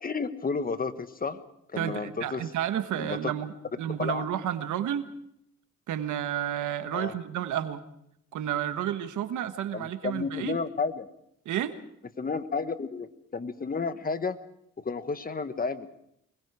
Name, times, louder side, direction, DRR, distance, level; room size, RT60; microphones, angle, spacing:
voice 1, 0.0-1.4 1.7-2.4 3.0-3.3 4.0-4.3 6.9-7.1 9.7-11.1 12.2-14.4 14.8-15.9, left 4 dB, 30° left, 11 dB, 1.5 m, -32 dB
voice 2, 1.8-5.1 5.9-7.8 8.3-10.6 11.4-11.7, right 10 dB, 80° right, 9 dB, 1.5 m, -31 dB
24.5 x 22.0 x 4.9 m, 0.74 s
cardioid pair, 90°, 30 cm